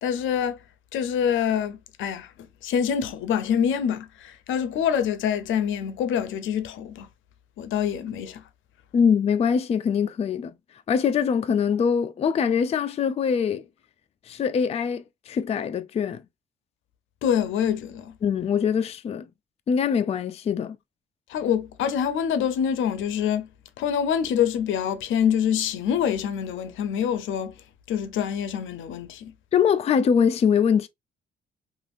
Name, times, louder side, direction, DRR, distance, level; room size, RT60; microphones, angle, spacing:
voice 1, 0.0-0.6 0.9-2.3 2.6-7.1 7.6-8.4 17.2-18.2 21.3-23.5 23.8-27.5 27.9-29.3, left 8 dB, 80° left, 0.6 m, -25 dB
voice 2, 8.9-10.5 10.9-13.6 14.3-16.2 18.2-19.2 19.7-20.8 29.5-30.9, left 7 dB, 30° left, 0.3 m, -23 dB
3.4 x 2.5 x 2.4 m
cardioid pair, 90°, 20 cm